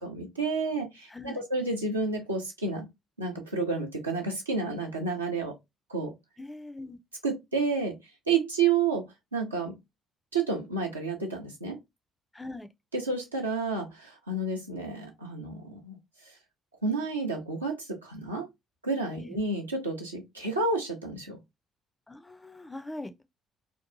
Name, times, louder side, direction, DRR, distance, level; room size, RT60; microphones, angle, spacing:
voice 1, 0.0-2.9 3.2-5.6 5.9-6.1 7.2-8.0 8.3-9.8 10.3-11.8 12.9-16.0 16.8-18.5 18.8-21.4, right 4 dB, 85° right, 0.5 m, -30 dB
voice 2, 1.1-1.4 6.4-7.0 12.3-12.7 19.1-19.3 22.1-23.2, left 2 dB, 15° left, 0.4 m, -41 dB
2.6 x 2.2 x 2.5 m
figure-of-eight pair, 45°, 0 cm